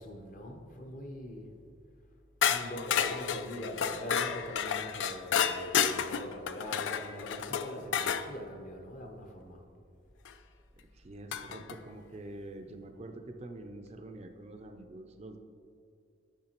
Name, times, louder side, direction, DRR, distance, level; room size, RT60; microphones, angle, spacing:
voice 1, 0.0-1.5 2.4-9.6, left 1 dB, 40° left, 3 dB, 0.7 m, -43 dB
sound 1, 2.4-8.3 10.2-10.3 11.3-11.8, left 8 dB, 70° left, 0.3 m, -31 dB
voice 2, 10.8-15.4, right 2 dB, 35° right, 6 dB, 0.4 m, -46 dB
10.5 x 5.8 x 2.9 m, 2.4 s
head